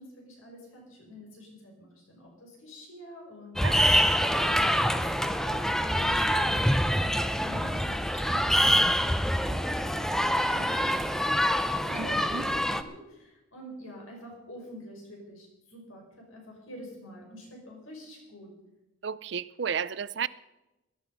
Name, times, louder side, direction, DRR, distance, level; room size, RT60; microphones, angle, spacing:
voice 1, 0.0-4.0 4.4-5.6 5.9-10.9 11.3-11.6 11.8-16.0 16.3-18.5, equal, 90° left, 5.7 m, -46 dB
sound 1, 3.6-12.8, equal, ahead, 0.5 m, -25 dB
voice 2, 3.6-4.0 4.5-4.6 11.9-12.5 19.0-20.3, right 7 dB, 55° right, 0.5 m, -33 dB
18.5 x 12.0 x 5.4 m
head